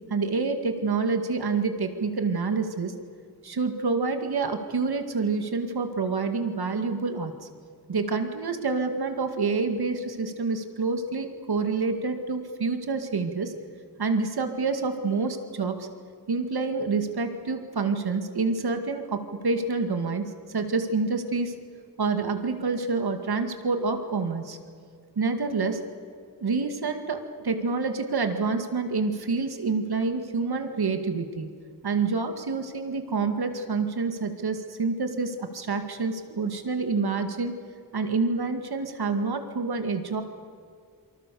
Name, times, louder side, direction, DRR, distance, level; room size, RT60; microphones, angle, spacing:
voice 1, 0.1-2.9 3.4-7.3 7.9-13.5 14.0-15.9 16.3-21.5 22.0-24.6 25.2-25.8 26.4-31.5 31.8-37.5 37.9-40.2, right 4 dB, 85° right, 6 dB, 2.2 m, -27 dB
27.5 x 25.0 x 7.0 m, 2.2 s
wide cardioid pair, 95°, 37 cm